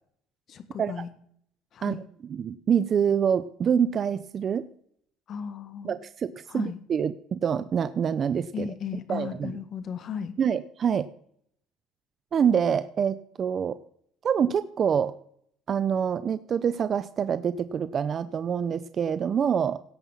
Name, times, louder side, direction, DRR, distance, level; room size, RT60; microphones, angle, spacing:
voice 1, 0.5-1.1 1.7-2.0 5.3-6.0 6.5-6.8 8.5-10.3, left 7 dB, 45° left, 11 dB, 1.5 m, -35 dB
voice 2, 2.3-4.7 5.8-8.7 9.1-9.5 10.4-11.1 12.3-13.8 14.2-15.1 15.7-19.8, right 7 dB, 35° right, 13 dB, 0.6 m, -26 dB
17.0 x 5.6 x 7.2 m, 0.65 s
cardioid pair, 130°, 0 cm